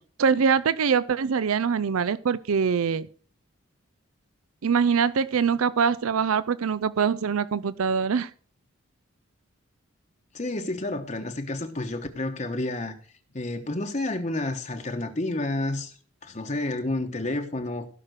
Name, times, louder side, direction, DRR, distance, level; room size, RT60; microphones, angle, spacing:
voice 1, 0.2-3.1 4.6-8.3, right 6 dB, 85° right, 0.5 m, -23 dB
voice 2, 10.3-12.9 13.3-17.9, left 2 dB, 35° left, 1.0 m, -30 dB
16.5 x 5.8 x 6.4 m
head